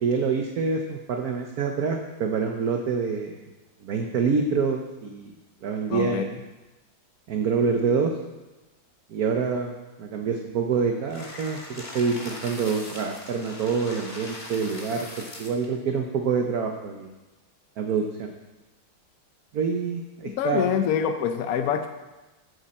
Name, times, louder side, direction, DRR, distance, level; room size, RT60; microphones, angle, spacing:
voice 1, 0.0-3.4 3.8-5.3 5.6-6.3 7.3-8.1 9.1-9.7 10.0-15.1 15.4-17.1 17.8-18.3 19.5-20.7, right 5 dB, 60° right, 3 dB, 1.1 m, -26 dB
voice 2, 5.9-6.3 20.2-21.9, left 8 dB, 70° left, 7 dB, 0.8 m, -25 dB
sound 1, 11.1-15.7, left 1 dB, 25° left, 1.8 m, -40 dB
15.5 x 8.0 x 4.3 m, 1.1 s
omnidirectional pair, 2.2 m